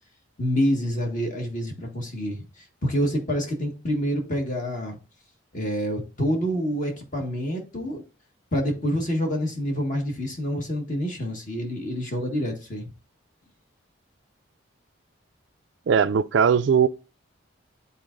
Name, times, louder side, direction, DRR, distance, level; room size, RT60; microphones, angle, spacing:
voice 1, 0.4-5.0 5.5-8.0 8.5-12.9, equal, 40° left, 1.5 m, -27 dB
voice 2, 15.9-16.9, right 7 dB, 60° right, 0.3 m, -19 dB
10.5 x 4.1 x 2.5 m
head